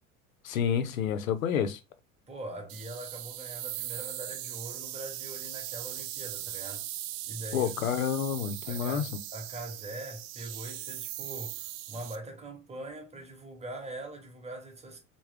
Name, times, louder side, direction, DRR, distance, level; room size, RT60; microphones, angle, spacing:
voice 1, 0.4-1.8 7.5-9.1, left 8 dB, 75° left, 0.7 m, -29 dB
voice 2, 2.3-6.9 7.2-7.7 8.7-15.0, right 2 dB, 15° right, 1.2 m, -42 dB
sound 1, 2.7-12.2, right 13 dB, 50° right, 0.5 m, -39 dB
3.4 x 2.2 x 3.3 m
figure-of-eight pair, 80°, 41 cm